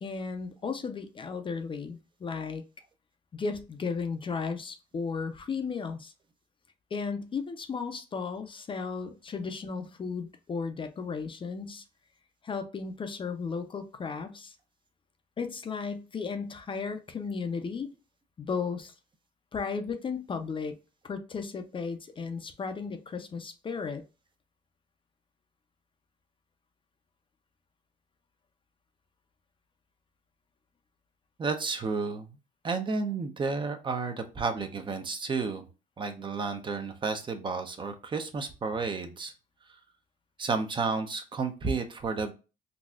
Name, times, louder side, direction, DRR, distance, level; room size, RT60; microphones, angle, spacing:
voice 1, 0.0-2.6 3.3-6.1 6.9-11.8 12.4-14.5 15.4-17.9 18.4-18.9 19.5-20.7 21.0-24.0, left 5 dB, 30° left, 0.5 m, -35 dB
voice 2, 31.4-32.3 32.6-35.7 36.0-39.3 40.4-42.3, right 4 dB, 30° right, 0.6 m, -31 dB
4.0 x 2.3 x 2.3 m
cardioid pair, 110°, 17 cm